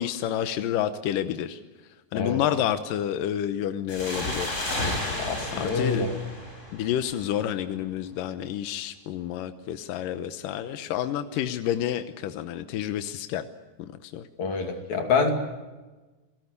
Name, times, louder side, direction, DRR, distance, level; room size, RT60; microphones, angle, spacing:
voice 1, 0.0-1.6 2.1-4.7 5.5-6.0 6.7-13.5 13.8-14.3, left 10 dB, 80° left, 10 dB, 2.6 m, -29 dB
sound 1, 3.9-7.3, left 1 dB, 20° left, 5.7 m, -32 dB
voice 2, 5.2-6.1 14.4-15.3, left 4 dB, 60° left, 5 dB, 3.8 m, -26 dB
29.5 x 18.5 x 8.2 m, 1.2 s
omnidirectional pair, 3.9 m